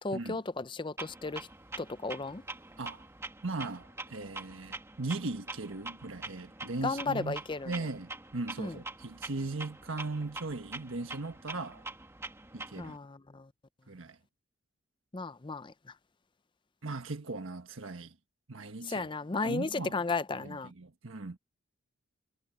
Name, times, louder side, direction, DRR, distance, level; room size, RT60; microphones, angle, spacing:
voice 1, 0.0-1.5 1.8-2.4 6.8-7.7 8.6-8.8 12.8-13.5 15.1-15.7 18.8-20.7, left 3 dB, 25° left, 0.6 m, -34 dB
Clock, 1.0-13.0, right 3 dB, 15° right, 1.8 m, -45 dB
voice 2, 3.4-11.9 12.5-13.0 13.9-14.2 16.8-18.1 18.5-19.1 19.4-20.0 20.4-21.4, right 3 dB, 80° right, 1.4 m, -38 dB
head